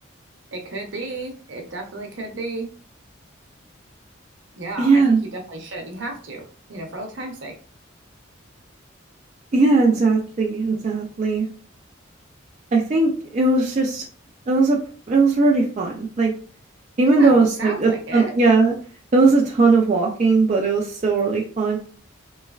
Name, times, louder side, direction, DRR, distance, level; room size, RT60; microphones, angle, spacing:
voice 1, 0.5-2.7 4.5-7.5 17.0-18.3, right 2 dB, 60° right, 3 dB, 0.7 m, -33 dB
voice 2, 4.8-5.2 9.5-11.5 12.7-14.0 14.5-14.8 15.1-16.3 17.0-18.7 19.1-21.8, right 3 dB, 35° right, -1 dB, 0.4 m, -18 dB
3.1 x 3.1 x 2.3 m, 0.42 s
head